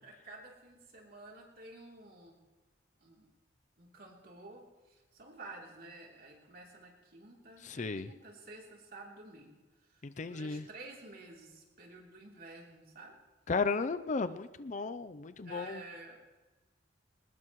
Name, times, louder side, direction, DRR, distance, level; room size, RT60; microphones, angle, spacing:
voice 1, 0.0-2.4 3.0-3.3 3.8-13.2 15.4-16.2, right 2 dB, 55° right, -1 dB, 3.3 m, -51 dB
voice 2, 7.6-8.1 10.0-10.7 13.5-15.8, left 4 dB, 40° left, 12 dB, 0.5 m, -34 dB
22.0 x 19.5 x 3.1 m, 1.2 s
head